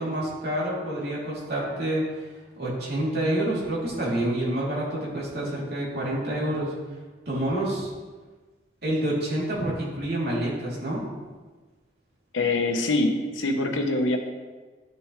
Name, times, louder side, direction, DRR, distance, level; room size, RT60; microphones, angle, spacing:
voice 1, 0.0-2.3 2.6-6.7 7.2-7.9 8.8-11.0, right 1 dB, 55° right, -6 dB, 3.0 m, -28 dB
voice 2, 12.3-14.2, left 2 dB, 85° left, 4 dB, 1.0 m, -24 dB
11.0 x 6.8 x 3.2 m, 1.3 s
head